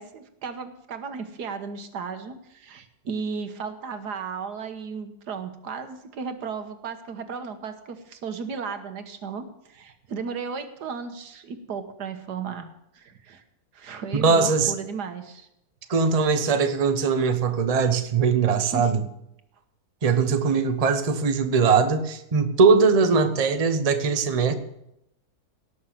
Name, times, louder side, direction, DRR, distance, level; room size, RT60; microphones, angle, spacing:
voice 1, 0.0-12.7 12.9-13.4 13.7-15.5 18.6-18.9, right 5 dB, 80° right, 8 dB, 1.8 m, -35 dB
voice 2, 14.1-14.7 15.9-19.0 20.0-24.5, right 5 dB, 25° right, 8 dB, 0.9 m, -21 dB
18.0 x 6.5 x 7.4 m, 0.82 s
omnidirectional pair, 1.7 m